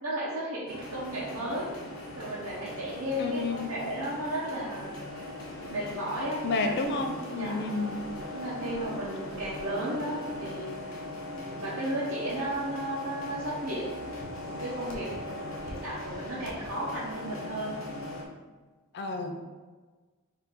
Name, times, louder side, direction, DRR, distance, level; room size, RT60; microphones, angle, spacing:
voice 1, 0.0-1.7 2.1-5.0 5.7-6.9 7.4-7.6 8.3-10.7 11.4-13.9 14.4-17.8, right 1 dB, 75° right, -9 dB, 0.9 m, -34 dB
sound 1, 0.7-18.3, left 1 dB, 65° left, 0.8 m, -39 dB
voice 2, 3.2-3.7 6.4-8.0 18.9-19.4, left 3 dB, 50° left, 4 dB, 0.4 m, -30 dB
3.5 x 2.7 x 4.0 m, 1.4 s
head